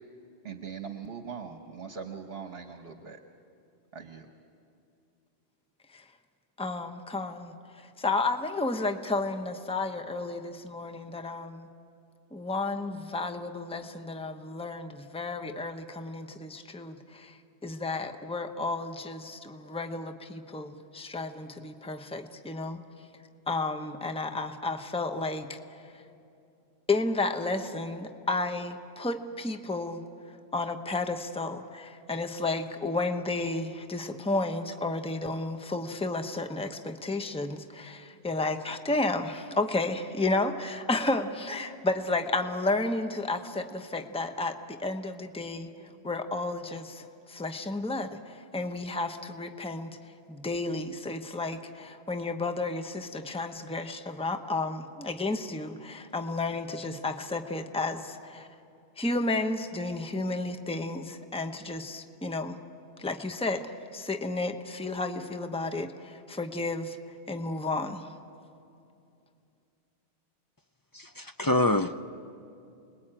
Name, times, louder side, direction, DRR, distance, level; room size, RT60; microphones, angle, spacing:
voice 1, 0.4-3.2 3.9-4.3, right 6 dB, 60° right, 5 dB, 1.3 m, -41 dB
voice 2, 6.6-11.7 12.3-22.8 23.5-25.9 26.9-30.0 30.5-45.7 46.0-58.5 59.0-62.6 63.0-67.0 67.3-68.1, left 2 dB, 5° left, 7 dB, 0.9 m, -32 dB
voice 3, 70.9-72.0, left 2 dB, 30° left, 8 dB, 0.4 m, -26 dB
29.0 x 21.5 x 8.9 m, 2.6 s
omnidirectional pair, 1.2 m